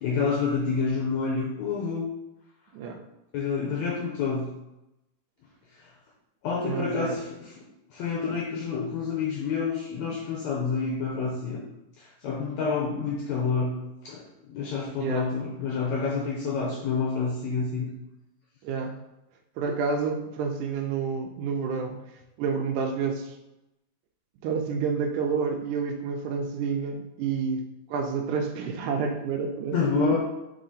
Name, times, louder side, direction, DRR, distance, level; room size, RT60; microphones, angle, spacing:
voice 1, 0.0-2.0 3.3-4.5 5.8-5.9 6.4-7.5 7.9-11.6 12.0-13.8 14.0-17.9 29.7-30.2, left 5 dB, 70° left, -3 dB, 1.9 m, -28 dB
voice 2, 6.6-7.2 15.0-15.3 18.6-19.0 19.6-22.0 22.4-23.4 24.4-30.2, right 5 dB, 80° right, 4 dB, 2.0 m, -29 dB
5.0 x 3.8 x 5.4 m, 0.94 s
omnidirectional pair, 3.7 m